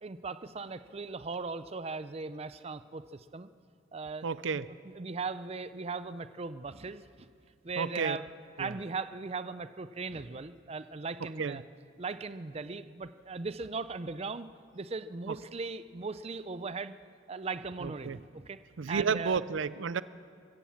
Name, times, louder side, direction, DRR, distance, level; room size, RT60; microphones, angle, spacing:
voice 1, 0.0-3.5 3.9-4.2 4.9-7.3 7.6-8.2 8.6-11.6 12.0-14.5 14.7-17.0 17.3-18.6 18.9-19.4, right 4 dB, 35° right, 12 dB, 0.5 m, -38 dB
voice 2, 4.2-4.7 7.8-8.2 8.6-8.8 11.2-11.6 15.3-15.4 17.8-18.2 18.8-20.0, right 5 dB, 80° right, 16 dB, 0.5 m, -32 dB
24.0 x 16.0 x 7.2 m, 2.3 s
head